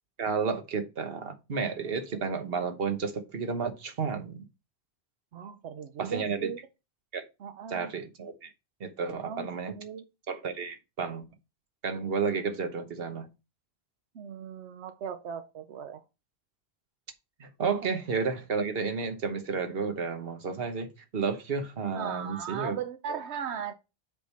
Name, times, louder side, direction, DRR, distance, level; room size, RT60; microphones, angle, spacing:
voice 1, 0.2-4.4 6.0-6.5 7.1-7.2 7.7-8.5 8.8-9.7 10.3-11.2 11.8-13.3 17.4-22.8 23.1-23.2, right 5 dB, 65° right, 1.3 m, -32 dB
voice 2, 5.3-6.6 7.4-7.9 9.2-10.0 14.1-16.0 21.9-23.7, right 7 dB, 90° right, 1.0 m, -37 dB
7.5 x 3.7 x 5.4 m
omnidirectional pair, 1.1 m